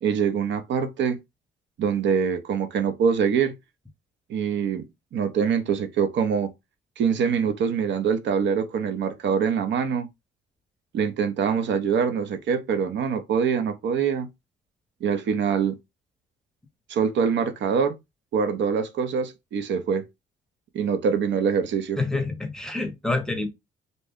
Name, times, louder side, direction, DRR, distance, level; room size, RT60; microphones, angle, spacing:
voice 1, 0.0-1.2 1.8-3.5 4.3-4.8 5.1-6.5 7.0-10.1 10.9-14.3 15.0-15.8 16.9-17.9 18.3-20.1 20.7-22.0, right 6 dB, 65° right, 0.6 m, -24 dB
voice 2, 22.0-23.5, left 2 dB, 5° left, 0.7 m, -27 dB
2.6 x 2.1 x 3.4 m
cardioid pair, 90°, 20 cm